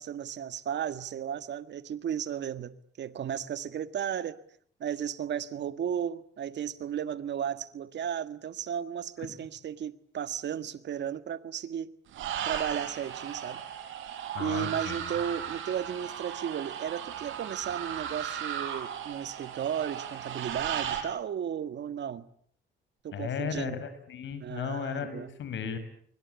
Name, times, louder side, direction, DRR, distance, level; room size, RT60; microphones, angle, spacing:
voice 1, 0.0-4.4 4.8-11.9 12.4-13.6 14.4-22.3 23.0-23.8 24.4-25.3, right 9 dB, 60° right, 1.7 m, -34 dB
sound 1, 12.1-21.0, right 9 dB, 85° right, 5.1 m, -36 dB
voice 2, 14.3-15.1 23.1-25.8, left 7 dB, 70° left, 6.1 m, -35 dB
28.0 x 24.0 x 8.3 m
cardioid pair, 90°, 20 cm